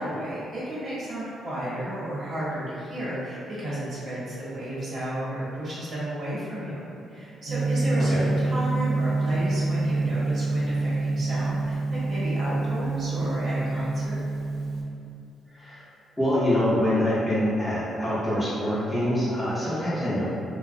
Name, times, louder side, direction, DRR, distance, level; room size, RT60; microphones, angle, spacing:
voice 1, 0.0-6.8 7.1-14.2 19.6-19.9, right 1 dB, 50° right, -9 dB, 0.9 m, -33 dB
Gong, 7.5-14.8, right 2 dB, 90° right, 0.5 m, -26 dB
voice 2, 8.0-8.3 15.5-15.8 16.2-20.3, left 1 dB, 10° left, -10 dB, 0.8 m, -25 dB
2.3 x 2.1 x 2.5 m, 2.5 s
cardioid pair, 90°, 0 cm